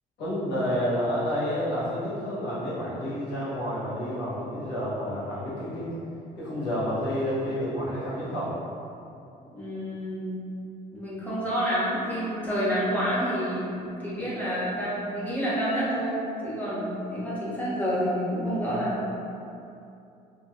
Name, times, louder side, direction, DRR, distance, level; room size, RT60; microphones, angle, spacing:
voice 1, 0.2-5.9 6.4-8.5, equal, 75° left, -10 dB, 1.2 m, -29 dB
voice 2, 9.5-10.4 10.9-16.2 16.4-19.0, equal, 10° left, -9 dB, 0.9 m, -28 dB
3.1 x 2.7 x 2.3 m, 2.7 s
cardioid pair, 110°, 17 cm